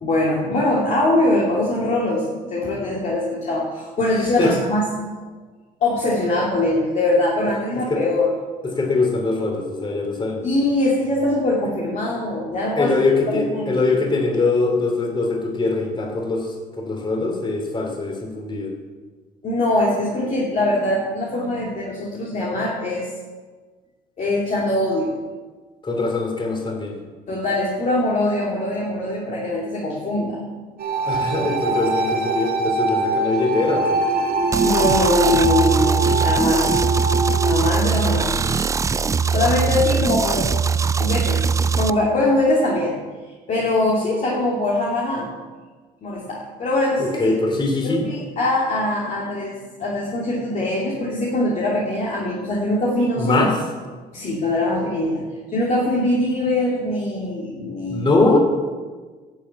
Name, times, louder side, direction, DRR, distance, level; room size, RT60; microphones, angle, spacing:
voice 1, 0.0-4.9 5.8-8.3 10.4-12.9 13.3-13.8 19.4-23.1 24.2-25.2 27.3-30.4 31.4-31.5 34.6-36.9 37.4-38.7 39.2-40.5 41.0-43.0 43.5-45.3 46.0-47.3 47.8-53.4 54.1-58.1, left 1 dB, 45° left, -4 dB, 2.7 m, -22 dB
voice 2, 8.6-10.5 12.8-18.7 25.8-27.0 31.0-34.0 47.0-48.0 53.2-53.5 57.9-58.4, left 3 dB, 30° left, 1 dB, 3.1 m, -22 dB
sound 1, 30.8-37.6, right 3 dB, 60° right, 1.6 m, -22 dB
sound 2, 34.5-41.9, right 6 dB, 20° right, 0.3 m, -21 dB
11.5 x 7.4 x 8.2 m, 1.4 s
cardioid pair, 110°, 17 cm